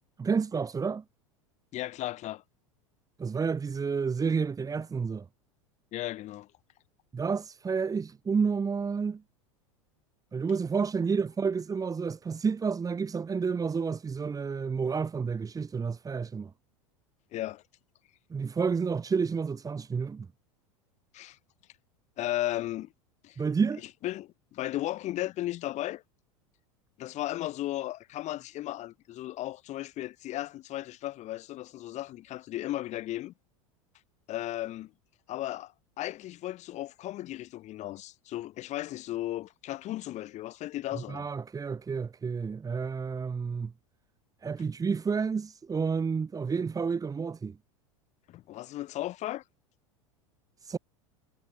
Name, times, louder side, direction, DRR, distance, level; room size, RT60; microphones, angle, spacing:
voice 1, 0.2-1.0 3.2-5.3 7.1-9.2 10.3-16.5 18.3-20.3 23.4-23.8 41.0-43.7 44.4-47.6 50.6-50.8, right 5 dB, 20° right, 4.5 m, -30 dB
voice 2, 1.7-2.4 5.9-6.5 17.3-17.6 21.1-21.4 22.2-22.9 23.2-23.4 24.0-26.0 27.0-33.3 34.3-34.9 35.3-41.3 48.3-49.4, left 15 dB, 45° left, 2.8 m, -35 dB
hypercardioid pair, 85°, 17 cm